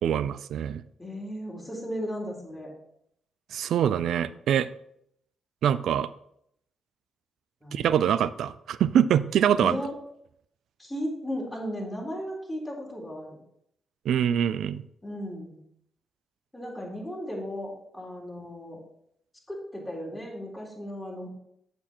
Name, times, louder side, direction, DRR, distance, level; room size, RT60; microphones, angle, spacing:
voice 1, 0.0-0.8 3.5-4.7 5.6-6.1 7.7-9.7 14.1-14.8, right 9 dB, 70° right, 16 dB, 0.4 m, -24 dB
voice 2, 1.0-2.7 7.6-8.0 9.6-9.9 10.8-13.3 15.0-15.6 16.5-18.8 19.5-21.3, equal, 10° left, -3 dB, 3.9 m, -35 dB
7.1 x 6.9 x 4.4 m, 0.73 s
hypercardioid pair, 50°, 0 cm